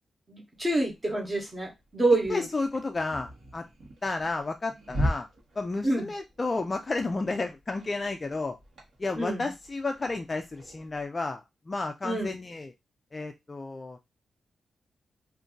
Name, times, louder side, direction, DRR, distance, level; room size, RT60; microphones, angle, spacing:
voice 1, 0.3-2.5 5.8-6.1 9.2-9.5 12.0-12.3, right 2 dB, 20° right, 1 dB, 0.9 m, -27 dB
sound 1, 0.5-11.0, equal, 65° right, 1.2 m, -39 dB
voice 2, 2.3-3.6 4.0-5.3 5.6-8.6 9.0-12.7 13.1-14.0, left 3 dB, 25° left, 5 dB, 0.3 m, -32 dB
2.5 x 2.5 x 3.7 m, 0.21 s
wide cardioid pair, 170°, 0 cm